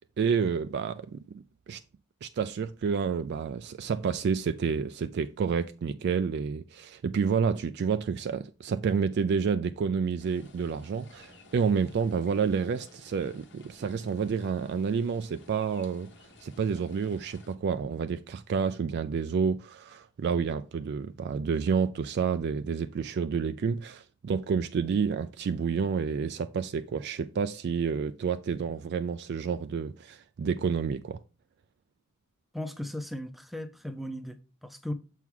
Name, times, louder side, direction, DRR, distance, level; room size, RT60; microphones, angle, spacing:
voice 1, 0.2-1.8 2.2-16.1 16.4-31.2, right 6 dB, 50° right, 0.3 m, -29 dB
sound 1, 10.2-17.6, left 2 dB, 55° left, 1.1 m, -55 dB
voice 2, 32.5-34.9, left 1 dB, ahead, 0.6 m, -37 dB
7.0 x 4.5 x 3.7 m
head